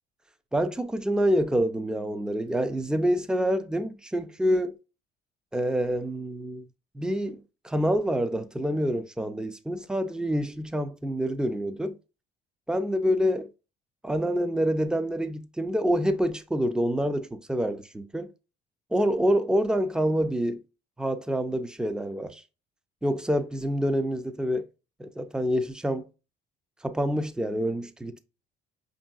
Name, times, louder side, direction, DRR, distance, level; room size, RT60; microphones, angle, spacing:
voice 1, 0.5-4.7 5.5-6.6 6.9-12.0 12.7-13.5 14.0-18.3 18.9-20.6 21.0-22.4 23.0-24.7 25.0-26.1 26.8-28.2, equal, 5° right, 0.4 m, -27 dB
5.3 x 2.7 x 2.3 m
cardioid pair, 110°, 17 cm